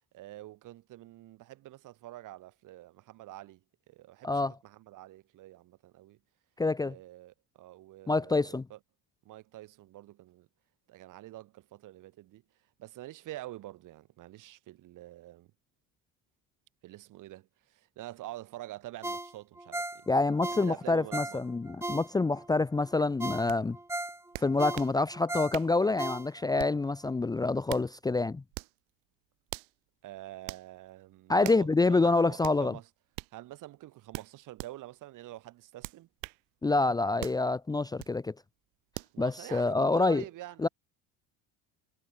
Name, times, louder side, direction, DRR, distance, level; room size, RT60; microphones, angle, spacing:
voice 1, 0.1-3.6 3.9-6.2 6.8-8.8 9.2-10.5 10.9-12.4 12.8-15.5 16.8-20.1 20.5-21.4 30.0-32.9 33.3-36.1 39.1-40.7, right 15 dB, 60° right, 5.9 m, -46 dB
voice 2, 4.2-4.5 6.6-6.9 8.1-8.7 20.1-23.8 24.4-28.4 31.3-32.7 36.6-38.3 39.2-40.2 40.6-40.7, left 3 dB, 10° left, 0.7 m, -27 dB
Ringtone, 19.0-22.5 22.9-23.0 23.2-26.6 27.0-27.1, right 2 dB, 5° right, 6.0 m, -37 dB
sound 1, 23.5-23.6 24.3-25.0 25.5-25.8 26.6-26.9 27.5-27.9 28.5-28.8 29.5-29.7 30.5-30.7 31.4-31.7 32.4-32.6 33.1-33.3 34.1-34.7 35.8-36.4 37.2-37.4 38.0-38.2 38.9-39.2, right 30 dB, 85° right, 3.5 m, -41 dB
cardioid pair, 130°, 36 cm